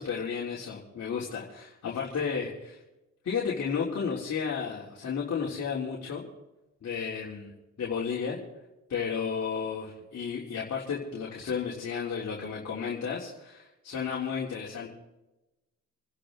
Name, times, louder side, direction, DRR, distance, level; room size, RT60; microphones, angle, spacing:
voice 1, 0.0-2.8 3.2-6.2 6.8-7.5 7.8-8.4 8.9-14.9, left 6 dB, 55° left, -4 dB, 3.4 m, -33 dB
28.0 x 11.5 x 3.9 m, 1.0 s
cardioid pair, 90°, 30 cm